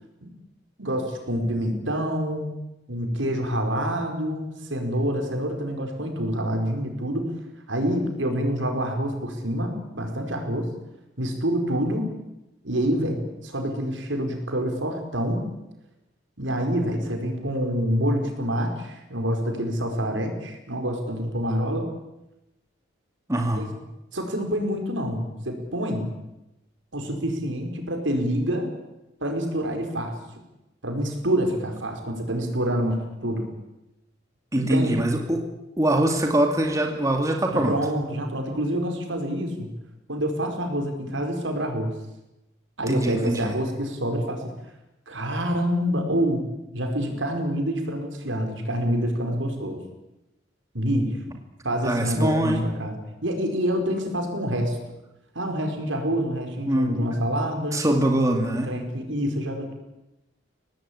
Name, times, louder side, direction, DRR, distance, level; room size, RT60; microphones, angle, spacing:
voice 1, 0.8-2.5 2.9-7.3 7.7-10.7 11.2-12.1 12.6-15.5 16.4-21.9 23.5-23.7 24.1-26.1 26.9-28.7 29.2-30.1 30.8-33.5 34.5-35.0 37.5-39.7 40.1-41.9 42.8-44.5 45.1-46.4 46.7-49.8 50.7-51.2 51.6-52.9 53.2-54.8 55.3-57.8 58.4-59.7, equal, 85° right, 4 dB, 5.1 m, -27 dB
voice 2, 23.3-23.7 34.5-35.4 35.8-37.7 42.9-43.5 51.8-52.6 56.7-57.2 57.7-58.7, right 1 dB, 15° right, 2 dB, 2.4 m, -23 dB
24.5 x 18.5 x 8.8 m, 0.95 s
head